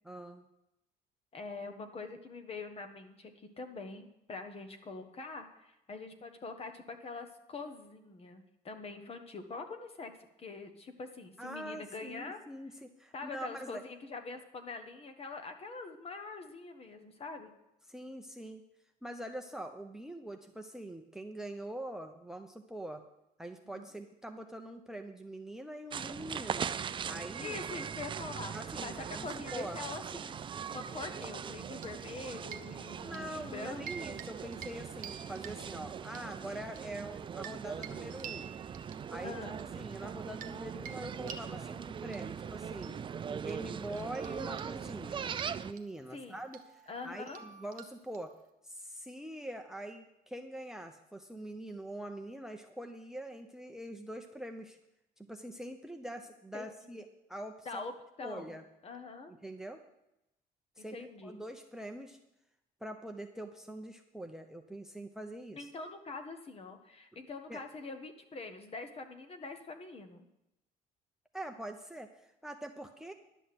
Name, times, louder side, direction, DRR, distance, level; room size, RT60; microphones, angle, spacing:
voice 1, 0.0-0.5 11.4-13.8 17.9-18.6 19.0-23.0 23.4-26.7 27.0-27.6 28.5-29.8 33.0-38.5 39.1-39.4 39.7-43.0 43.3-48.3 48.6-54.8 55.2-57.8 58.2-58.6 59.3-59.8 60.8-61.0 61.2-62.2 62.8-65.7 67.5-67.6 71.3-73.1, right 1 dB, 5° right, 6 dB, 0.8 m, -44 dB
voice 2, 1.3-12.4 13.1-17.5 23.6-23.9 27.4-34.2 39.2-39.6 46.1-46.4 46.9-47.4 56.5-57.0 57.6-57.9 58.2-58.6 58.8-59.3 60.8-61.4 65.6-70.3, left 3 dB, 35° left, 6 dB, 1.4 m, -44 dB
sound 1, 25.9-45.7, right 7 dB, 30° right, 0.4 m, -41 dB
sound 2, 29.5-30.5 31.2-32.1 32.4-33.3 33.7-34.3 34.5-34.8 35.0-36.2 36.8-40.6 40.9-48.5, right 8 dB, 50° right, 1.2 m, -50 dB
11.5 x 6.4 x 7.8 m, 0.87 s
cardioid pair, 110°, 17 cm